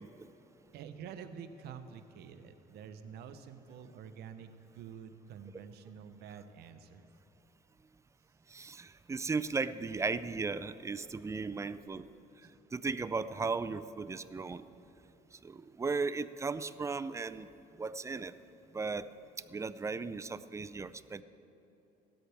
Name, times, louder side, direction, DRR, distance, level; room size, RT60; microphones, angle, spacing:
voice 1, 0.7-7.1 12.4-12.5, right 7 dB, 75° right, 9 dB, 0.8 m, -48 dB
voice 2, 8.5-12.1 12.7-14.7 15.4-17.5 17.8-18.3 18.7-19.1 19.5-21.2, right 4 dB, 15° right, 14 dB, 0.4 m, -36 dB
17.0 x 13.0 x 3.5 m, 3.0 s
cardioid pair, 110°, 17 cm